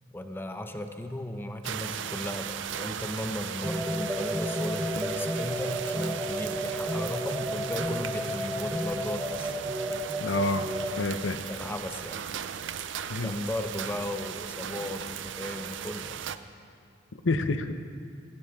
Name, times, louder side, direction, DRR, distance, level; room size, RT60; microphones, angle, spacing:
voice 1, 0.1-9.5 11.5-12.2 13.2-16.2, left 1 dB, 10° left, 7 dB, 0.7 m, -36 dB
sound 1, 1.6-16.4, right 8 dB, 70° right, 0.5 m, -37 dB
sound 2, 3.6-11.0, equal, 10° right, 0.9 m, -32 dB
voice 2, 10.2-10.7 11.0-11.4 13.1-13.3 17.2-17.7, left 3 dB, 75° left, 9 dB, 0.7 m, -27 dB
16.5 x 15.5 x 3.6 m, 2.3 s
head